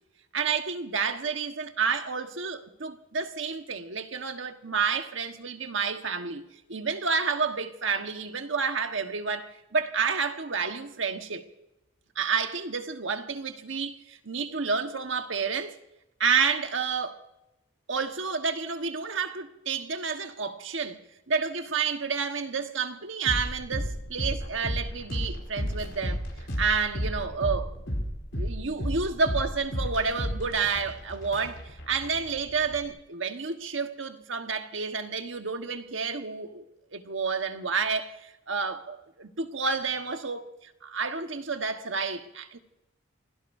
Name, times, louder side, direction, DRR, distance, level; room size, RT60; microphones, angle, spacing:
voice 1, 0.3-6.4 6.7-11.4 12.1-15.7 16.2-17.2 17.9-21.0 21.3-27.7 28.3-36.6 36.9-42.6, right 5 dB, 75° right, 1.4 m, -30 dB
sound 1, 23.2-32.9, equal, 65° left, 4.7 m, -33 dB
28.5 x 17.0 x 2.7 m
head